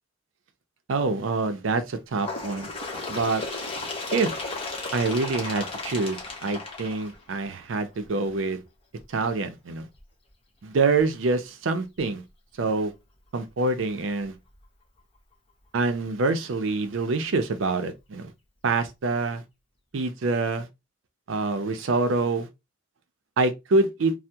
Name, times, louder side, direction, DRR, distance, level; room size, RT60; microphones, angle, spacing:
voice 1, 0.9-2.7 3.1-3.4 4.1-4.3 4.9-8.6 9.1-9.9 10.6-12.2 12.6-12.9 13.3-14.4 15.7-18.3 18.6-19.4 19.9-20.7 21.3-22.5 23.4-24.1, right 3 dB, 85° right, 0.5 m, -26 dB
Bird, 2.2-7.6 8.5-8.6 9.0-9.1 10.0-10.1 11.0-11.1 12.0-12.1, left 3 dB, 30° left, 0.9 m, -34 dB
3.4 x 2.0 x 2.7 m
head